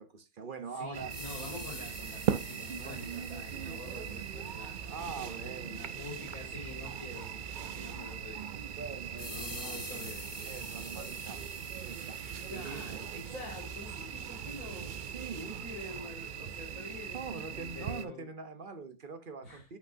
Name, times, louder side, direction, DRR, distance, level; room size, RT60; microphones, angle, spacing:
voice 1, 0.0-1.1 2.8-3.0 4.8-5.9 8.7-9.8 10.4-12.9 15.1-15.6 17.1-19.8, right 5 dB, 45° right, 0.8 m, -43 dB
voice 2, 0.7-8.4 9.3-10.3 12.5-15.1 15.5-18.3 19.4-19.7, left 2 dB, 65° left, 4.1 m, -47 dB
sound 1, 0.9-18.0, right 8 dB, 80° right, 0.4 m, -40 dB
sound 2, 1.1-4.9 9.2-13.9, left 2 dB, 15° left, 1.2 m, -48 dB
8.1 x 5.8 x 2.6 m
omnidirectional pair, 1.6 m